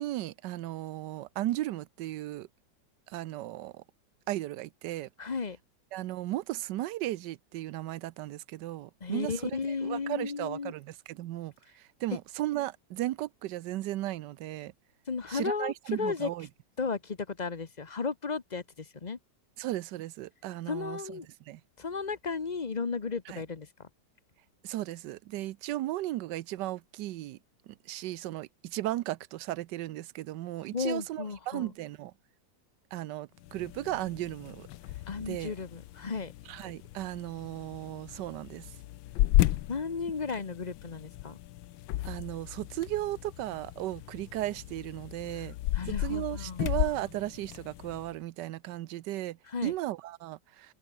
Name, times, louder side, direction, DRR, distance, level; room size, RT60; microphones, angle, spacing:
voice 1, 0.0-2.5 3.1-3.8 4.3-5.1 5.9-14.7 15.3-16.5 19.6-21.2 21.5-21.6 23.3-23.4 24.6-27.4 27.7-32.1 32.9-34.7 35.2-35.5 36.5-38.7 42.0-45.5 46.0-50.7, right 15 dB, 70° right, 1.2 m, -36 dB
voice 2, 5.2-5.6 9.0-10.7 15.1-16.3 16.8-19.2 20.7-21.2 21.8-23.9 30.7-31.7 35.1-36.3 39.7-41.4 45.3-45.4 45.7-46.7 49.5-49.7, left 5 dB, 30° left, 0.9 m, -34 dB
sound 1, 33.4-48.2, left 15 dB, 85° left, 1.4 m, -34 dB
omnidirectional pair, 2.1 m